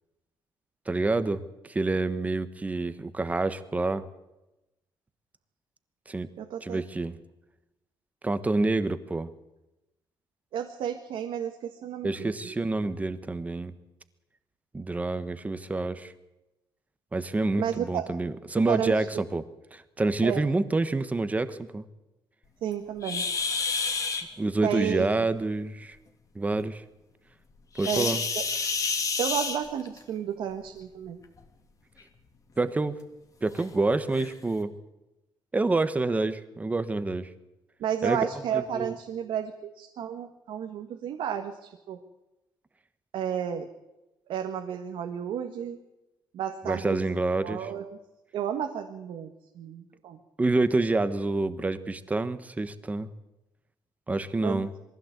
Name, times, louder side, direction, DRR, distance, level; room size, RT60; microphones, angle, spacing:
voice 1, 0.9-4.0 6.1-6.3 6.6-7.1 8.2-9.3 12.0-13.7 14.7-16.1 17.1-19.4 19.7-21.9 24.4-26.0 26.3-26.8 27.8-28.2 32.6-33.0 33.4-34.8 35.5-37.3 38.0-38.3 38.5-39.0 46.6-47.7 50.4-53.1 54.1-54.7, right 2 dB, 15° right, 12 dB, 1.2 m, -27 dB
voice 2, 6.4-6.8 10.5-12.5 17.6-18.0 18.7-19.2 20.2-20.4 22.6-23.2 24.6-25.1 27.9-28.4 29.2-31.2 37.8-42.0 43.1-43.7 44.3-45.8 46.3-47.0 47.4-48.0 48.3-50.2 54.4-54.6, right 9 dB, 80° right, 4 dB, 1.6 m, -32 dB
sound 1, 23.0-24.2 27.8-30.0 31.2-31.4 32.0-32.1 32.7-32.8 33.6-33.7 34.1-34.3, left 4 dB, 40° left, 2.7 m, -29 dB
22.0 x 15.5 x 8.1 m, 0.96 s
cardioid pair, 145°, 9 cm